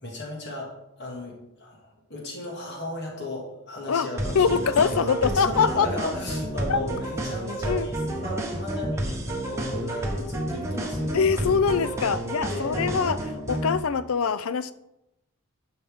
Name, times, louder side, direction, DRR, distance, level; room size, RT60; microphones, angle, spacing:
voice 1, 0.0-0.7 1.0-11.6 12.4-13.1, left 1 dB, 50° left, -1 dB, 2.1 m, -35 dB
sound 1, 4.2-13.8, right 1 dB, 10° right, 1.0 m, -30 dB
voice 2, 4.3-5.9 6.7-6.8 7.7-7.9 11.1-13.2 13.5-14.7, left 6 dB, 75° left, 14 dB, 0.4 m, -23 dB
11.0 x 5.7 x 3.6 m, 0.89 s
head